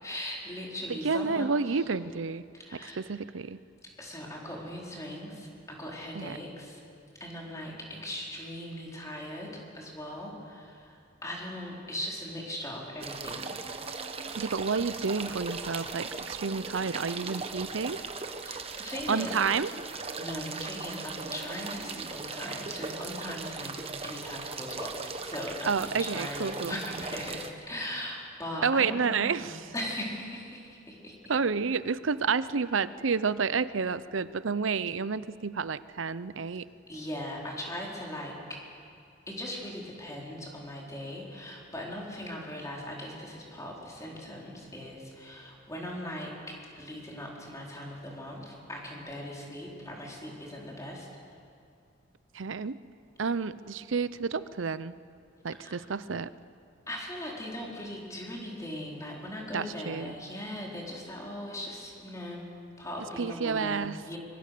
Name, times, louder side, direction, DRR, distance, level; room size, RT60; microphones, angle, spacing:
voice 1, 0.0-1.8 2.5-3.0 4.0-6.8 7.2-13.6 18.3-19.3 20.2-31.1 36.9-38.6 39.3-51.1 55.6-55.8 56.9-62.4 62.8-64.2, left 1 dB, 15° left, -3 dB, 4.5 m, -39 dB
voice 2, 0.9-2.4 2.7-3.6 6.1-6.4 14.3-18.0 19.1-19.7 25.7-26.8 28.6-29.6 31.3-36.7 52.3-52.8 53.2-54.9 55.4-56.3 59.5-60.1 63.2-64.0, right 5 dB, 90° right, 15 dB, 0.7 m, -30 dB
sound 1, 13.0-27.5, right 4 dB, 30° right, 1.3 m, -38 dB
24.5 x 23.5 x 6.8 m, 2.4 s
head